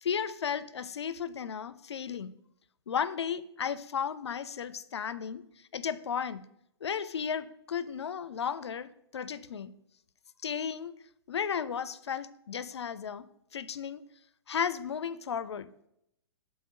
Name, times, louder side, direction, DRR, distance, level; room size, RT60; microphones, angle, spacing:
voice 1, 0.0-2.3 2.9-5.5 5.7-6.5 6.8-9.7 10.4-10.9 11.3-14.0 14.5-15.7, left 7 dB, 80° left, 15 dB, 0.4 m, -34 dB
5.6 x 4.3 x 4.9 m, 0.77 s
hypercardioid pair, 120°, 14 cm